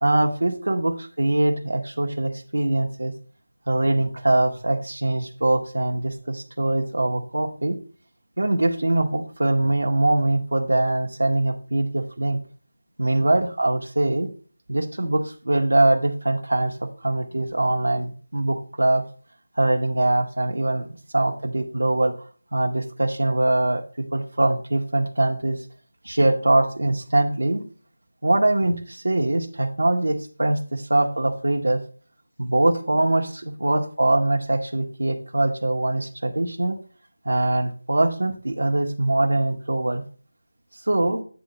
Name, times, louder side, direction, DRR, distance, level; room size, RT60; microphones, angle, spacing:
voice 1, 0.0-3.1 3.7-7.8 8.4-12.4 13.0-14.3 14.7-19.0 19.6-20.9 21.1-25.6 26.0-27.6 28.2-31.8 32.4-36.8 37.2-40.0 40.9-41.2, right 2 dB, 85° right, 3 dB, 1.2 m, -22 dB
8.5 x 3.9 x 5.5 m, 0.40 s
figure-of-eight pair, 180°, 0 cm